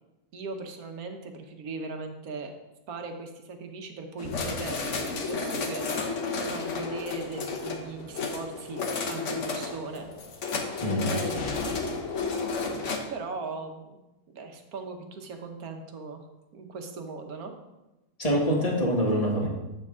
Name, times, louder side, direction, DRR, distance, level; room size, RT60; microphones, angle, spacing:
voice 1, 0.3-2.5 2.9-6.1 6.5-8.8 9.1-10.1 11.0-11.6 13.1-14.0 14.3-16.2 16.5-17.5, right 3 dB, 70° right, 4 dB, 1.4 m, -38 dB
sound 1, 4.2-13.0, left 4 dB, 55° left, 1.2 m, -32 dB
voice 2, 18.2-19.5, equal, 25° left, -1 dB, 1.4 m, -25 dB
8.2 x 6.8 x 3.6 m, 1.0 s
omnidirectional pair, 1.6 m